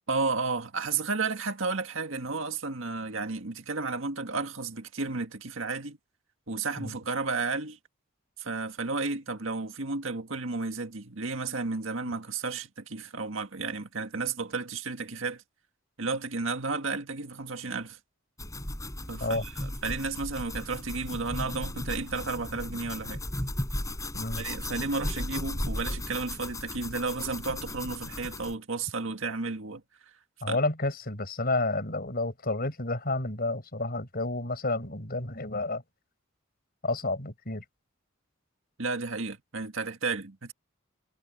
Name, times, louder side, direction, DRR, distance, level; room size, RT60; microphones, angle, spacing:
voice 1, 0.1-6.0 6.5-7.8 8.4-15.4 16.0-18.0 19.1-23.2 24.4-29.8 30.5-30.6 38.8-40.5, right 4 dB, 70° right, 1.9 m, -32 dB
sound 1, 18.4-28.5, left 1 dB, 15° left, 5.0 m, -36 dB
voice 2, 30.4-35.8 36.8-37.6, left 2 dB, 45° left, 5.9 m, -30 dB
head